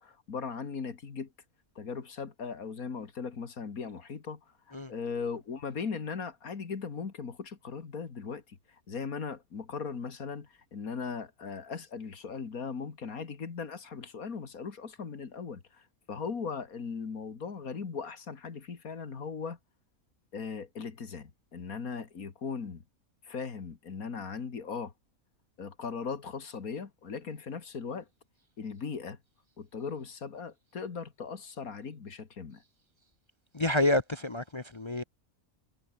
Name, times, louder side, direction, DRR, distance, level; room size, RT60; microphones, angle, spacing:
voice 1, 0.0-1.3 1.8-4.4 4.7-8.6 8.9-19.6 20.3-22.8 23.2-24.9 25.6-28.1 28.6-29.2 29.6-32.6, left 5 dB, 90° left, 2.5 m, -38 dB
voice 2, 33.5-35.0, left 1 dB, 25° left, 0.7 m, -28 dB
omnidirectional pair, 1.5 m